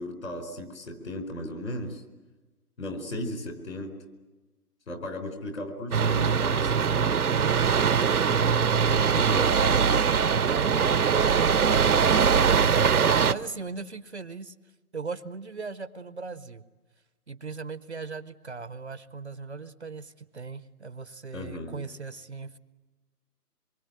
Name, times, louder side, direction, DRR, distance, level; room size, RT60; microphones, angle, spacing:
voice 1, 0.0-2.0 2.8-3.9 4.9-7.1 9.1-9.7 21.3-21.8, left 1 dB, 55° left, 6 dB, 4.6 m, -36 dB
sound 1, 5.9-13.3, right 6 dB, 65° right, 0.9 m, -22 dB
voice 2, 10.3-14.5 14.9-16.6 17.3-22.6, right 4 dB, 45° right, 14 dB, 0.8 m, -39 dB
25.5 x 23.0 x 9.3 m, 1.2 s
hypercardioid pair, 170°, 47 cm